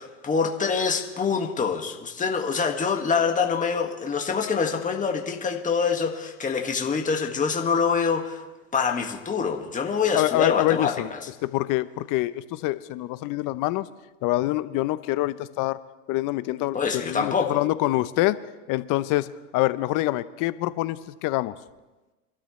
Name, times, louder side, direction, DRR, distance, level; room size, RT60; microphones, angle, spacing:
voice 1, 0.0-8.4 8.7-11.2 16.7-17.6, left 5 dB, 20° left, 2 dB, 1.8 m, -25 dB
voice 2, 10.1-11.1 11.4-13.9 14.2-15.8 16.1-18.4 18.7-19.3 19.5-21.5, left 17 dB, 50° left, 15 dB, 0.8 m, -25 dB
25.5 x 12.5 x 3.2 m, 1.1 s
hypercardioid pair, 100°, 42 cm